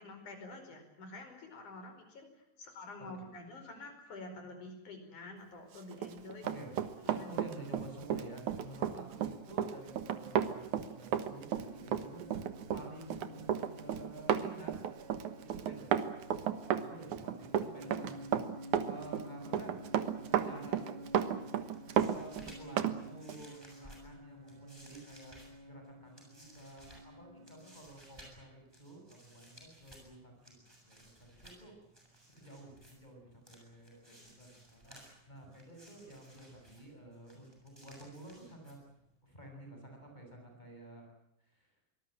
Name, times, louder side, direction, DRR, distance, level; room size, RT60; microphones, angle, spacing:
voice 1, 0.0-2.3 2.6-6.4 7.0-7.3 8.9-9.1 16.8-17.2 34.3-34.4, left 2 dB, 85° left, 6 dB, 6.5 m, -48 dB
Run, 5.9-23.0 23.3-23.4, right 9 dB, 80° right, 2.8 m, -33 dB
voice 2, 7.0-12.4 12.7-14.9 15.4-16.0 16.8-19.8 20.2-20.8 22.1-31.8 32.3-35.0 35.3-38.8 39.2-41.0 41.4-41.7, right 1 dB, 15° left, 2 dB, 7.0 m, -51 dB
sound 1, 11.6-27.8, left 1 dB, 35° right, 3.2 m, -52 dB
sound 2, 21.6-39.2, right 1 dB, 5° right, 6.9 m, -59 dB
24.5 x 19.5 x 8.9 m, 0.82 s
omnidirectional pair, 3.4 m